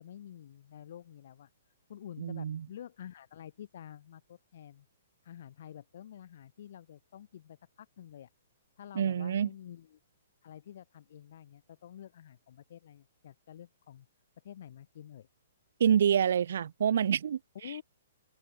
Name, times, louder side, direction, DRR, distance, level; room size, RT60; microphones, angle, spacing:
voice 1, 0.0-1.5 1.9-4.9 5.2-8.3 8.8-10.0 10.4-14.1 14.4-15.3 17.5-17.8, left 10 dB, 60° left, 0.9 m, -49 dB
voice 2, 2.2-2.6 8.9-9.5 15.8-17.4, right 8 dB, 65° right, 0.5 m, -27 dB
hypercardioid pair, 150°, 0 cm